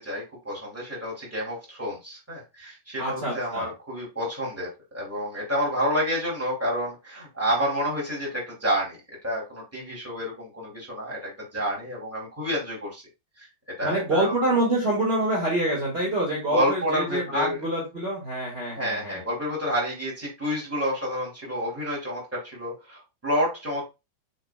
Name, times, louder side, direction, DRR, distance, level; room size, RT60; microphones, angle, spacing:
voice 1, 0.0-9.0 9.2-13.0 13.4-14.3 16.5-17.6 18.8-23.8, equal, 5° right, -4 dB, 2.3 m, -29 dB
voice 2, 3.0-3.7 13.8-19.2, right 1 dB, 25° right, -4 dB, 1.5 m, -26 dB
7.7 x 5.7 x 2.4 m, 0.26 s
omnidirectional pair, 4.6 m